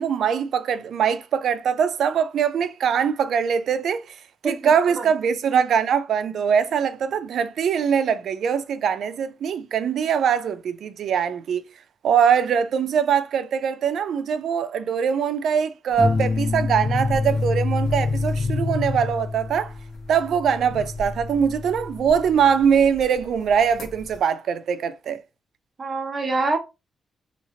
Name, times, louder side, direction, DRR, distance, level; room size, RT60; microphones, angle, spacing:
voice 1, 0.0-4.1 4.4-11.6 12.0-19.7 20.1-25.2, right 7 dB, 75° right, 0.4 m, -22 dB
sound 1, 16.0-23.0 23.5-24.2, left 3 dB, 65° left, 1.2 m, -27 dB
voice 2, 25.8-26.6, right 3 dB, 40° right, 0.8 m, -25 dB
2.9 x 2.8 x 2.8 m
cardioid pair, 105°, 0 cm